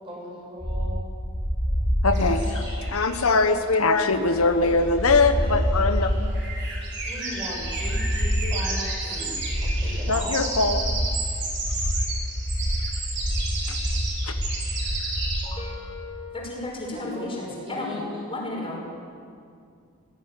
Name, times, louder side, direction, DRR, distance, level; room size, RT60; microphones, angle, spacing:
voice 1, 0.0-1.0 7.1-10.5 16.9-18.3, equal, 25° right, -3 dB, 6.9 m, -38 dB
sound 1, 0.6-15.5, equal, 5° left, 2.1 m, -27 dB
voice 2, 2.0-6.1 8.4-8.5 10.1-10.8 13.7-13.8 14.2-14.3, left 3 dB, 90° left, 8 dB, 1.3 m, -22 dB
sound 2, 2.1-3.7 4.2-4.3 4.6-4.7 5.0-15.4, right 3 dB, 55° right, 5.1 m, -33 dB
voice 3, 15.4-17.4 17.7-18.0 18.3-18.9, left 2 dB, 25° left, -2 dB, 5.6 m, -33 dB
20.0 x 16.5 x 10.0 m, 2.3 s
head